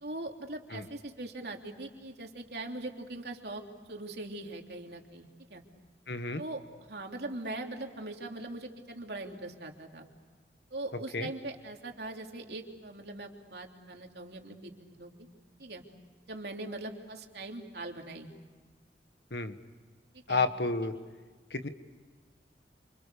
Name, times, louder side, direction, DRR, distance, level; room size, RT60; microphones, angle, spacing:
voice 1, 0.0-3.6 3.9-5.6 6.4-10.1 10.7-15.3 15.6-15.8 16.3-18.3 20.1-20.5, right 2 dB, 70° right, 2 dB, 3.2 m, -41 dB
voice 2, 6.1-6.4 11.1-11.3 19.3-19.6 20.3-20.9 21.5-21.7, left 3 dB, 75° left, 9 dB, 1.6 m, -31 dB
28.5 x 27.5 x 6.8 m, 1.4 s
head